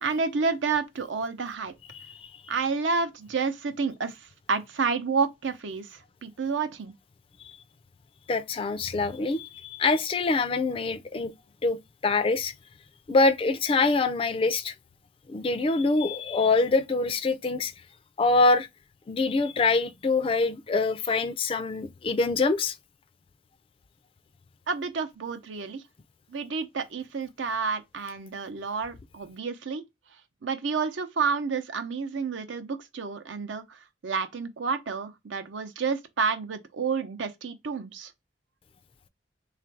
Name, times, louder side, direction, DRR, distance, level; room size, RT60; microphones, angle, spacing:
voice 1, 0.0-1.7 2.5-6.9 24.7-25.8 26.3-29.8 30.4-38.1, right 5 dB, 85° right, 0.6 m, -30 dB
voice 2, 1.9-2.3 8.3-11.3 11.6-12.5 13.1-14.7 15.3-17.7 18.2-18.7 19.1-22.7, left 3 dB, 30° left, 0.3 m, -25 dB
3.4 x 2.4 x 4.5 m
head